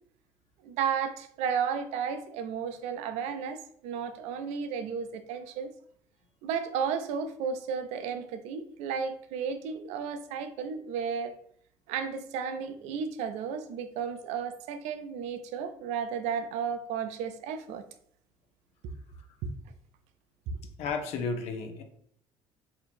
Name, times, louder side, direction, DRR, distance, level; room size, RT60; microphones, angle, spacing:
voice 1, 0.6-5.7 6.4-11.3 11.9-17.8 19.4-19.5 20.5-20.6, right 6 dB, 80° right, 9 dB, 0.4 m, -33 dB
voice 2, 20.8-21.8, left 4 dB, 70° left, 6 dB, 0.6 m, -32 dB
2.8 x 2.6 x 4.3 m, 0.66 s
supercardioid pair, 85°, 12 cm